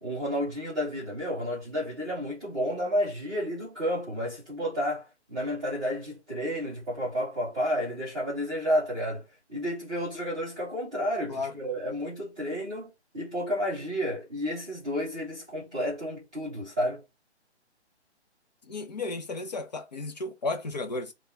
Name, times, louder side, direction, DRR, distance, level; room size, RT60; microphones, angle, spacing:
voice 1, 0.0-17.0, equal, 5° right, 0.5 m, -31 dB
voice 2, 18.7-21.1, left 3 dB, 40° left, 0.6 m, -33 dB
4.2 x 2.3 x 3.6 m
hypercardioid pair, 155°, 34 cm